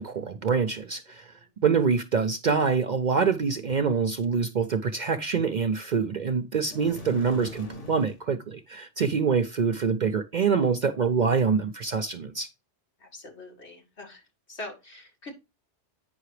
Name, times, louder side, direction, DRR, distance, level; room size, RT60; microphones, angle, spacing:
voice 1, 0.0-1.3 1.6-12.5, right 5 dB, 50° right, 0.6 m, -25 dB
sound 1, 6.7-8.2, left 2 dB, 90° left, 1.9 m, -41 dB
voice 2, 13.0-14.2 14.5-15.3, left 2 dB, 65° left, 2.4 m, -43 dB
8.8 x 5.7 x 3.2 m
omnidirectional pair, 1.2 m